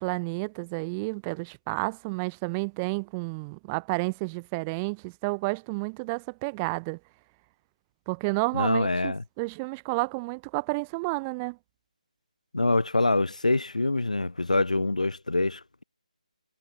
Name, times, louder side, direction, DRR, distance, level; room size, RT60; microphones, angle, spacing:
voice 1, 0.0-7.0 8.1-11.6, right 29 dB, 10° right, 0.3 m, -31 dB
voice 2, 8.5-9.2 12.5-15.8, left 2 dB, 70° left, 0.6 m, -25 dB
figure-of-eight pair, 150°, 4 cm